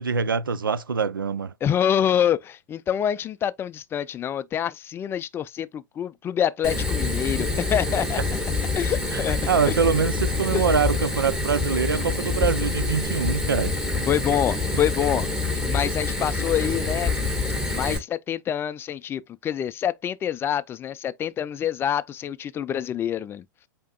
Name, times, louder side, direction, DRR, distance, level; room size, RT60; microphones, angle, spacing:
voice 1, 0.0-1.5 9.1-13.7, right 6 dB, 85° right, 0.4 m, -24 dB
voice 2, 1.6-8.2 8.7-9.8 10.5-10.6 14.1-15.3 15.7-17.2 17.7-23.4, left 9 dB, 20° left, 0.4 m, -26 dB
Fire, 6.6-18.0, left 3 dB, 5° right, 1.6 m, -26 dB
8.2 x 2.8 x 2.3 m
figure-of-eight pair, 100°, 11 cm